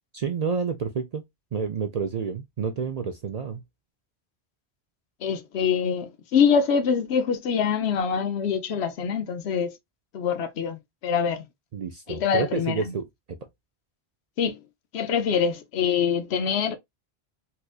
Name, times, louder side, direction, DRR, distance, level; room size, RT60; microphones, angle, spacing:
voice 1, 0.1-1.2 1.5-3.6 11.7-13.4, right 5 dB, 50° right, 0.5 m, -29 dB
voice 2, 5.2-9.7 10.1-10.8 11.0-11.4 12.1-12.8 14.4-14.6 14.9-16.8, left 7 dB, 85° left, 0.9 m, -24 dB
4.3 x 2.5 x 2.3 m
omnidirectional pair, 1.1 m